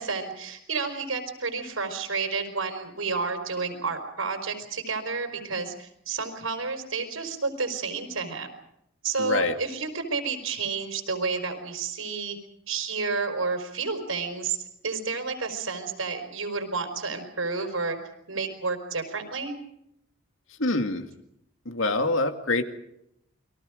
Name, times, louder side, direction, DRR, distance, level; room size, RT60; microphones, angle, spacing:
voice 1, 0.0-8.5 9.0-12.4 12.7-14.6 14.8-18.0 18.3-19.6, right 4 dB, 85° right, 7 dB, 4.9 m, -30 dB
voice 2, 9.2-9.6 20.5-21.1 21.7-22.6, left 2 dB, 75° left, 7 dB, 2.2 m, -25 dB
29.5 x 23.0 x 5.2 m, 0.78 s
head